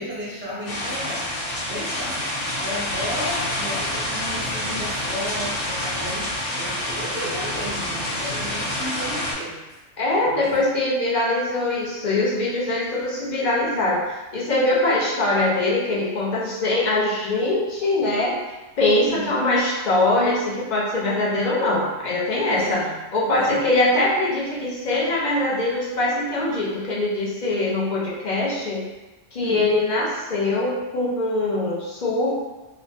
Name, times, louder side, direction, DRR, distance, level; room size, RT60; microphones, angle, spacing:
voice 1, 0.0-1.3 1.6-9.8 10.2-10.5 19.0-19.3 22.6-22.9 23.3-23.6 29.4-29.7, equal, 15° right, -10 dB, 0.4 m, -33 dB
sound 1, 0.6-9.3, left 1 dB, 75° left, 1.6 m, -28 dB
voice 2, 10.0-14.0 14.3-18.4 18.8-22.8 23.1-28.8 29.3-32.3, left 2 dB, 45° left, -5 dB, 0.6 m, -22 dB
3.2 x 2.0 x 2.7 m, 1.1 s
omnidirectional pair, 1.3 m